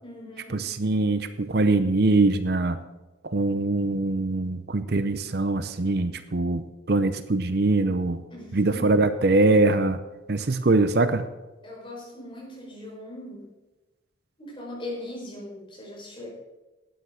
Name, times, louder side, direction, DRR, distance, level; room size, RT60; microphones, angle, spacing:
voice 1, 0.0-0.7 8.3-9.0 11.6-13.5 14.4-16.3, left 1 dB, 25° left, -4 dB, 5.2 m, -39 dB
voice 2, 0.5-2.8 3.2-8.2 8.5-10.0 10.3-11.2, right 2 dB, 55° right, 11 dB, 0.6 m, -23 dB
11.5 x 9.4 x 6.4 m, 1.1 s
head